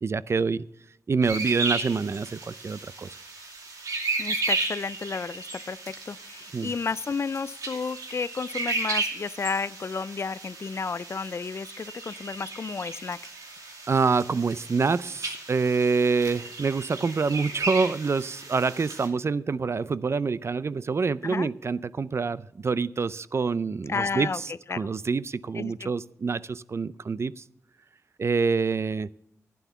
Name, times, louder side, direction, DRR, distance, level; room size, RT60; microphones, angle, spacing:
voice 1, 0.0-0.7 1.1-3.1 6.5-6.7 13.9-27.4 28.2-29.1, right 4 dB, 50° right, 18 dB, 0.4 m, -26 dB
sound 1, 1.2-19.1, right 3 dB, 85° right, 2.4 m, -34 dB
voice 2, 4.2-13.2 21.2-21.5 23.9-24.4 24.7-24.9 25.6-25.9, left 5 dB, 50° left, 19 dB, 0.4 m, -32 dB
11.5 x 9.3 x 5.7 m, 0.80 s
cardioid pair, 70°, 6 cm